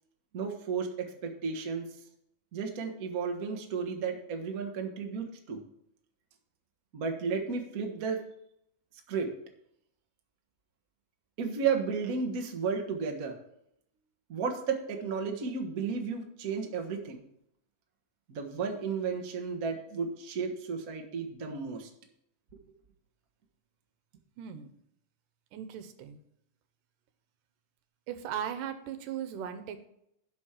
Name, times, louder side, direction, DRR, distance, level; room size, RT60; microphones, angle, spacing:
voice 1, 0.3-1.9 2.5-5.6 6.9-8.2 9.1-9.3 11.4-13.4 14.3-17.2 18.3-21.9, right 5 dB, 65° right, 3 dB, 0.8 m, -33 dB
voice 2, 24.4-24.7 25.5-26.2 28.1-29.9, right 9 dB, 80° right, 10 dB, 2.5 m, -38 dB
11.5 x 5.3 x 5.7 m, 0.76 s
omnidirectional pair, 3.8 m